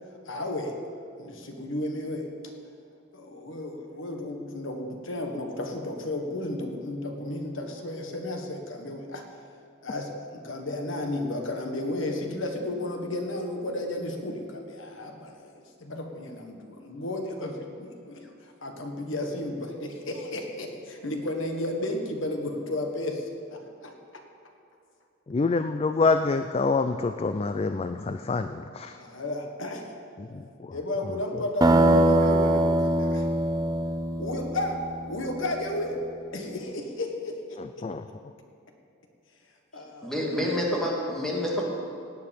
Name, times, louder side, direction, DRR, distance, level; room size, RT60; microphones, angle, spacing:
voice 1, 0.2-0.8 1.2-2.3 3.1-9.2 9.8-23.9 29.0-29.9 30.7-33.3 34.2-34.8 35.1-36.1 36.3-37.9 39.7-40.4, left 1 dB, 65° left, 3 dB, 1.5 m, -33 dB
voice 2, 25.3-29.0 30.2-30.7 37.6-38.0, left 3 dB, 30° left, 9 dB, 0.3 m, -27 dB
sound 1, 31.6-35.4, right 2 dB, 20° right, 0.7 m, -23 dB
voice 3, 40.0-41.6, left 1 dB, ahead, -4 dB, 2.2 m, -28 dB
17.0 x 9.7 x 5.3 m, 2.5 s
head